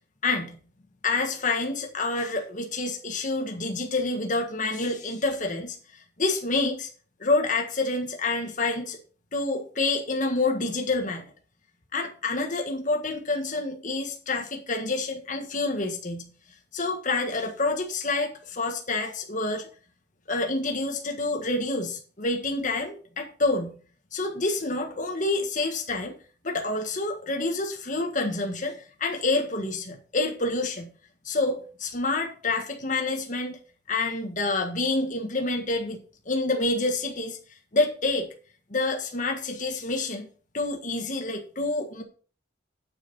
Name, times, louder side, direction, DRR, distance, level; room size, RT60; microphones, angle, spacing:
voice 1, 0.2-0.6 1.0-6.9 7.2-9.0 9.3-11.3 11.9-16.3 16.7-19.7 20.3-23.7 24.1-26.1 26.4-30.9 31.2-33.6 33.9-37.4 37.7-38.3 38.7-40.3 40.5-42.0, left 2 dB, 45° left, 3 dB, 1.6 m, -28 dB
8.9 x 6.8 x 5.4 m, 0.41 s
head